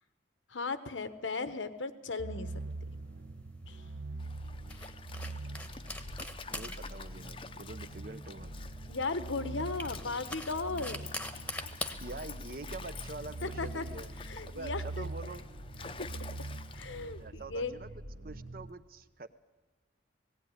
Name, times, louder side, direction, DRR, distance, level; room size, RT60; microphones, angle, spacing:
voice 1, 0.5-2.5 3.7-3.8 8.9-11.1 13.4-13.8 14.3-15.1 15.8-16.1 16.7-17.7, left 3 dB, 85° left, 12 dB, 1.1 m, -36 dB
sound 1, 2.2-18.7, right 2 dB, 70° right, 1.1 m, -43 dB
sound 2, 2.5-15.1, left 2 dB, 5° left, 1.1 m, -45 dB
Stream, 4.2-17.3, left 5 dB, 25° left, 0.7 m, -49 dB
voice 2, 6.5-8.5 12.0-14.1 14.4-15.4 17.2-19.4, right 3 dB, 50° right, 13 dB, 0.8 m, -45 dB
18.5 x 16.5 x 9.7 m, 1.3 s
head